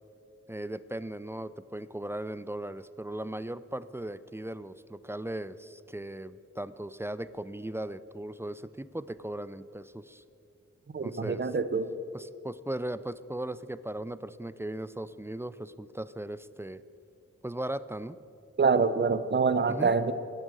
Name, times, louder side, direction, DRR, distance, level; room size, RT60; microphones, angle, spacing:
voice 1, 0.5-10.2 11.0-11.5 12.1-16.8 17.4-18.2 19.7-19.9, right 1 dB, 10° right, 16 dB, 0.3 m, -38 dB
voice 2, 10.9-11.9 18.6-20.1, right 5 dB, 35° right, 13 dB, 0.7 m, -25 dB
9.4 x 8.9 x 6.5 m, 2.5 s
cardioid pair, 50°, 31 cm